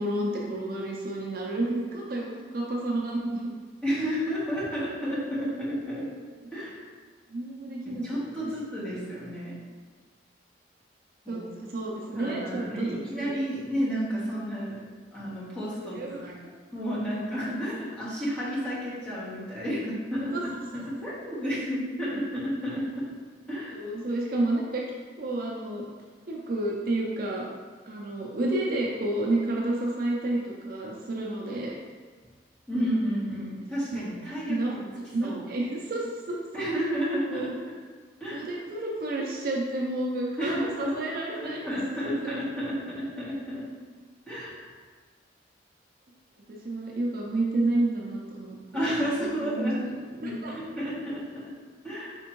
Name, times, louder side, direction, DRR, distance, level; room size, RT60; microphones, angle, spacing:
voice 1, 0.0-3.5 7.3-8.0 8.4-8.5 11.3-13.3 15.9-16.4 20.3-20.4 23.7-24.8 25.2-25.8 26.3-27.5 27.9-31.7 33.3-33.5 33.9-34.0 34.5-34.7 35.1-36.4 37.3-37.5 38.3-41.8 42.0-42.4 46.5-48.9 49.2-49.7 50.2-50.5, right 2 dB, 50° right, -2 dB, 0.5 m, -30 dB
voice 2, 3.8-6.1 6.5-6.8 7.9-9.5 11.2-11.4 12.2-14.8 15.1-16.3 16.7-20.3 20.7-23.0 23.5-23.8 32.7-34.9 35.2-35.4 36.5-37.5 38.2-38.5 40.4-43.6 44.3-44.7 48.7-51.4 51.8-52.2, equal, 5° left, -10 dB, 1.2 m, -31 dB
4.3 x 3.4 x 3.0 m, 1.5 s
head